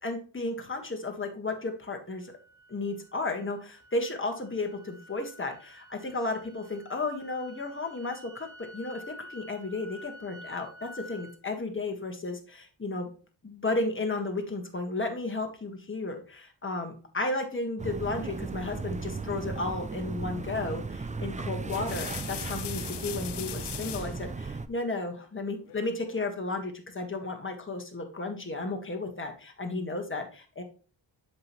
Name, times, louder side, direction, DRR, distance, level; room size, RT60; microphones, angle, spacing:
voice 1, 0.0-2.3 2.7-8.5 8.7-13.1 13.4-30.6, left 2 dB, 25° left, 3 dB, 1.6 m, -33 dB
sound 1, 2.2-11.4, left 1 dB, 85° right, 2.2 m, -50 dB
sound 2, 17.8-24.7, right 4 dB, 20° right, 0.4 m, -36 dB
sound 3, 20.5-20.8 21.5-24.2 25.6-26.3, left 12 dB, 65° left, 0.5 m, -40 dB
7.5 x 5.9 x 3.1 m, 0.37 s
wide cardioid pair, 85°, 45 cm